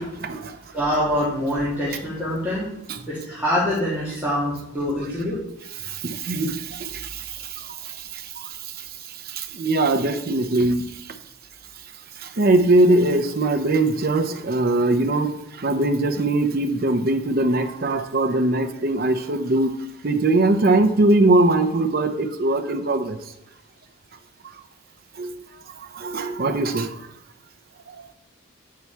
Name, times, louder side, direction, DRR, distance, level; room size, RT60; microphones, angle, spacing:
voice 1, 0.2-0.5 2.9-3.0 5.8-7.2 7.6-8.2 9.3-10.8 12.4-19.7 20.0-23.2 25.2-25.4 25.9-26.9, right 2 dB, 45° right, 8 dB, 0.6 m, -21 dB
voice 2, 0.7-2.7 3.1-5.4, equal, 5° right, -9 dB, 1.7 m, -24 dB
8.4 x 4.7 x 4.4 m, 0.83 s
head